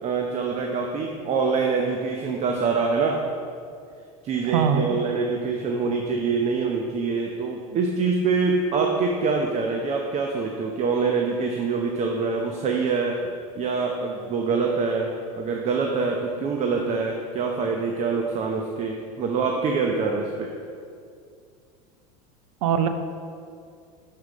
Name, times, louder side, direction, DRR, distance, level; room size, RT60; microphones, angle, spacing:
voice 1, 0.0-3.2 4.2-13.2 13.6-20.5, right 4 dB, 40° right, 1 dB, 0.8 m, -25 dB
voice 2, 4.5-4.9 22.6-22.9, right 7 dB, 80° right, 8 dB, 0.6 m, -21 dB
6.7 x 6.3 x 5.1 m, 2.3 s
supercardioid pair, 110°, 18 cm